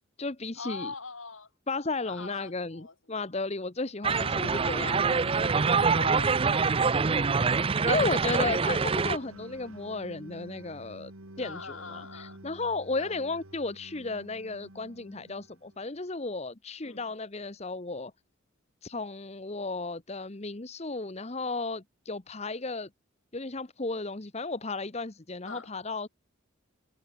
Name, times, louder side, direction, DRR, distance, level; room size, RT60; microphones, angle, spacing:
voice 1, 0.0-0.9 1.7-5.5 7.9-11.1 11.4-18.1 18.8-22.9 23.3-26.1, left 3 dB, 30° left, 1.0 m, -34 dB
voice 2, 0.6-1.5 2.1-2.9 5.9-7.3 11.4-12.4 13.0-13.1 16.8-17.1 25.5-25.7, left 4 dB, 75° left, 5.3 m, -42 dB
sound 1, 4.0-9.2, right 5 dB, 25° right, 0.5 m, -25 dB
sound 2, 4.1-15.9, right 2 dB, 90° right, 3.6 m, -46 dB
head